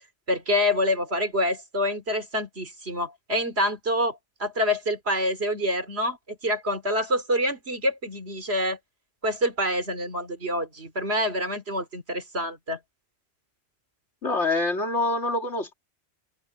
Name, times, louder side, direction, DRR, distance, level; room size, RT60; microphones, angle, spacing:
voice 1, 0.3-8.8 9.2-12.8, left 1 dB, 65° right, 3.5 m, -27 dB
voice 2, 14.2-15.7, left 2 dB, 90° left, 3.0 m, -25 dB
omnidirectional pair, 1.1 m